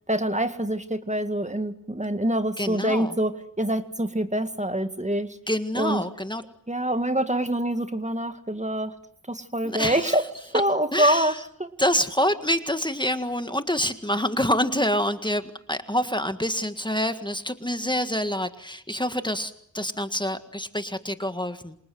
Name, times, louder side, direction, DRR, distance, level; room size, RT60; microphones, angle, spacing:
voice 1, 0.1-5.4 5.8-6.0 6.7-9.0 9.3-11.7, right 1 dB, 25° right, 9 dB, 1.9 m, -25 dB
voice 2, 2.6-3.1 5.5-6.4 9.6-10.2 10.9-11.4 11.8-21.8, equal, 15° left, 9 dB, 1.8 m, -27 dB
28.0 x 27.0 x 7.8 m, 0.67 s
wide cardioid pair, 50°, 30 cm